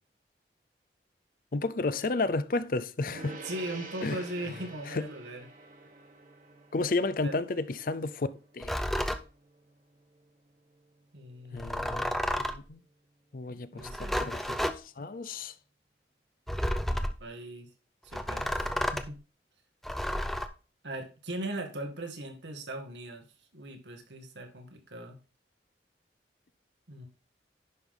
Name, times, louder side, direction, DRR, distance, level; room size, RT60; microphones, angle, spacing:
voice 1, 1.5-3.4 4.0-4.2 4.9-5.0 6.7-8.3 8.5-8.8 11.5-12.1 12.4-12.8 13.3-15.5, left 3 dB, 50° left, 0.5 m, -32 dB
Gong, 3.1-12.9, right 3 dB, 45° right, 1.4 m, -50 dB
voice 2, 3.1-5.5 7.2-7.3 11.1-12.2 13.5-14.2 17.2-17.7 18.0-19.2 20.8-23.3 23.5-25.2 26.9-27.1, right 1 dB, 90° right, 1.9 m, -40 dB
sound 1, 8.6-9.2 11.6-12.7 13.8-14.8 16.5-17.2 18.1-19.1 19.8-20.5, equal, ahead, 0.5 m, -31 dB
10.5 x 5.4 x 3.8 m
head